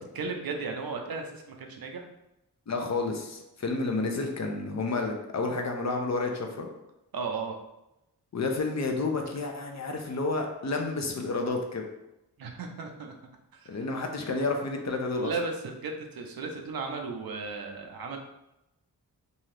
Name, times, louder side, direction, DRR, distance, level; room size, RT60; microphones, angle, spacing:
voice 1, 0.1-2.1 7.1-7.6 12.4-13.1 13.5-13.8 15.2-18.2, right 4 dB, 65° right, 3 dB, 0.6 m, -35 dB
voice 2, 2.7-6.7 8.3-11.9 13.7-15.3, left 3 dB, 45° left, 3 dB, 0.6 m, -30 dB
2.7 x 2.4 x 3.2 m, 0.90 s
cardioid pair, 40°, 39 cm